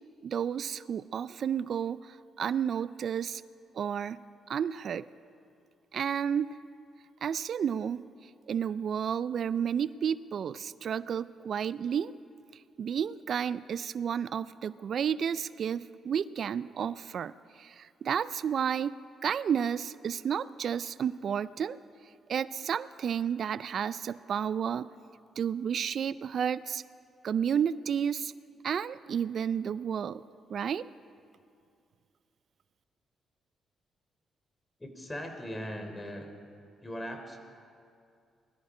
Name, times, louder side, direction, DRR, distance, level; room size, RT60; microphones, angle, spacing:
voice 1, 0.2-3.4 3.7-4.2 4.5-5.1 5.9-6.6 7.2-12.1 12.5-18.9 19.2-21.8 22.3-24.9 25.4-26.8 27.2-28.3 28.6-30.2 30.5-30.9, right 8 dB, 65° right, 17 dB, 0.3 m, -31 dB
voice 2, 34.8-36.3 36.8-37.4, equal, 25° left, 5 dB, 3.3 m, -39 dB
21.0 x 13.0 x 4.9 m, 2.4 s
supercardioid pair, 55°, 0 cm